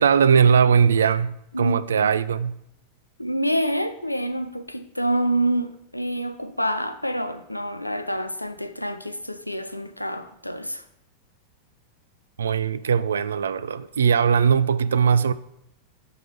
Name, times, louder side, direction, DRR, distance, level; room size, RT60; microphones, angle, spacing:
voice 1, 0.0-2.6 12.4-15.3, right 7 dB, 70° right, 0.3 m, -20 dB
voice 2, 1.5-2.1 3.2-10.8, right 1 dB, 85° left, 0.5 m, -27 dB
5.9 x 5.0 x 5.4 m
figure-of-eight pair, 90°, 0 cm